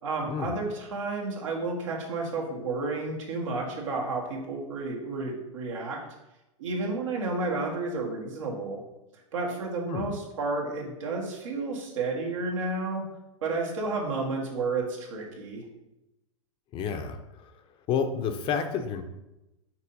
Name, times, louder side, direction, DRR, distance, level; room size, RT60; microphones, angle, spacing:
voice 1, 0.0-6.0 6.6-8.8 9.3-13.0 13.4-15.6, right 3 dB, 80° right, -1 dB, 1.8 m, -31 dB
voice 2, 16.7-17.2 17.9-19.0, left 6 dB, 35° left, 7 dB, 0.6 m, -29 dB
5.9 x 3.0 x 5.3 m, 0.94 s
hypercardioid pair, 120°, 16 cm